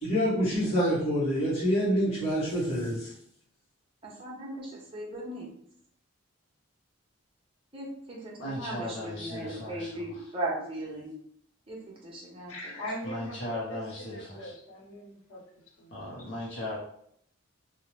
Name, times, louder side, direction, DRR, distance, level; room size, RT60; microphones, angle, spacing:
voice 1, 0.0-3.1, equal, 30° left, -10 dB, 1.0 m, -26 dB
voice 2, 4.0-5.5 7.7-11.1 11.7-12.5, right 1 dB, 25° right, -4 dB, 0.7 m, -37 dB
voice 3, 8.3-10.1 13.0-14.5 15.9-16.8, left 1 dB, 55° left, -6 dB, 0.6 m, -37 dB
voice 4, 12.5-15.9, equal, 90° left, -2 dB, 0.8 m, -41 dB
2.6 x 2.0 x 3.0 m, 0.67 s
head